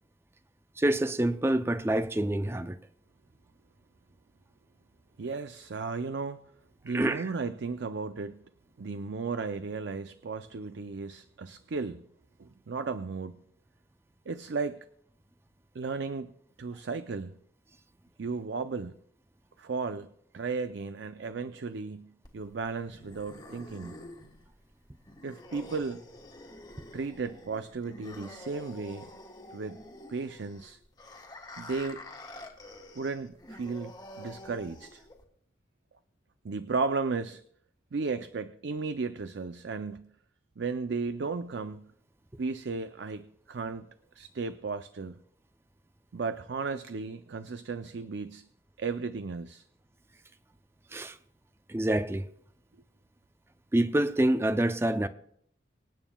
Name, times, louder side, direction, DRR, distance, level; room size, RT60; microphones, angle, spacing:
voice 1, 0.8-2.8 6.9-7.3 50.9-51.2 51.7-52.3 53.7-55.1, right 1 dB, 15° right, 0.4 m, -26 dB
voice 2, 5.2-6.4 6.8-8.4 8.8-12.0 12.4-13.4 14.3-14.9 15.7-16.3 16.6-17.4 18.2-19.0 19.6-24.0 25.2-26.0 26.9-29.1 29.5-29.8 30.1-30.8 31.6-32.0 32.9-35.0 36.4-37.4 37.9-40.1 40.6-41.9 42.4-43.9 44.1-45.2 46.1-48.5 48.8-49.6, right 4 dB, 80° right, 0.5 m, -35 dB
sound 1, 22.2-35.2, left 1 dB, 25° left, 1.5 m, -48 dB
26.0 x 9.0 x 2.3 m
head